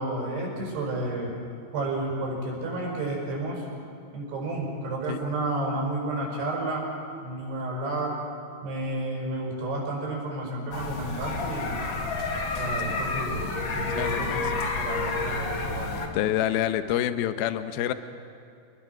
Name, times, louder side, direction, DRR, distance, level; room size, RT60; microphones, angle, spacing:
voice 1, 0.0-1.3 1.7-3.6 4.1-6.9 7.2-8.1 8.6-11.8 12.5-13.5 13.7-16.0, right 2 dB, 70° right, -2 dB, 7.9 m, -31 dB
sound 1, 10.7-16.1, left 3 dB, 45° left, 1.6 m, -30 dB
voice 2, 13.9-14.5 16.1-17.9, left 12 dB, 75° left, 9 dB, 2.6 m, -27 dB
29.0 x 21.5 x 6.1 m, 2.5 s
omnidirectional pair, 4.9 m